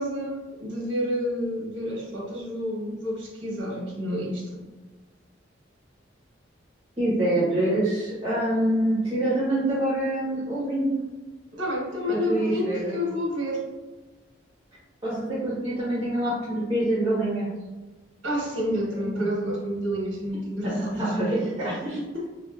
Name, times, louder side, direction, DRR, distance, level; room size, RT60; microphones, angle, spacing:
voice 1, 0.0-4.6 11.5-13.7 18.2-21.1 22.1-22.3, equal, 90° right, -3 dB, 1.2 m, -29 dB
voice 2, 7.0-10.9 12.1-13.0 15.0-17.5 19.2-19.3 20.6-22.0, right 1 dB, 25° right, -8 dB, 1.1 m, -25 dB
4.9 x 2.6 x 2.4 m, 1.2 s
head